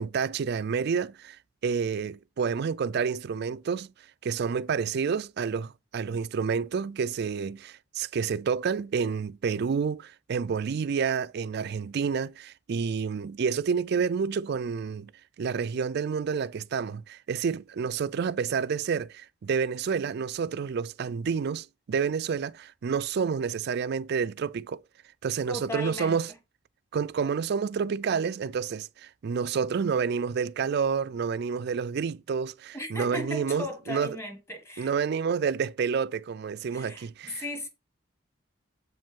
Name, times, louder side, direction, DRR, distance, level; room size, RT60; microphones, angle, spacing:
voice 1, 0.0-1.4 1.6-3.9 4.2-15.1 15.4-24.8 25.2-26.3 26.9-34.2 34.8-37.4, right 6 dB, 50° right, 0.3 m, -29 dB
voice 2, 25.5-26.4 32.7-35.0 36.7-37.7, left 2 dB, 15° left, 1.3 m, -37 dB
7.7 x 5.1 x 3.7 m
head